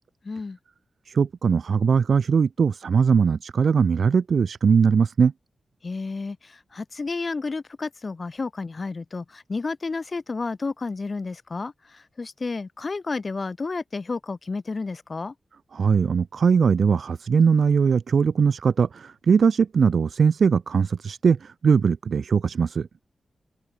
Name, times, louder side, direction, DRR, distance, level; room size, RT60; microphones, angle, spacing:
voice 1, 0.2-0.6 5.8-15.3, left 3 dB, 45° left, 1.2 m, -31 dB
voice 2, 1.1-5.3 15.7-22.9, right 6 dB, 70° right, 0.3 m, -20 dB
open air
cardioid pair, 75°, 0 cm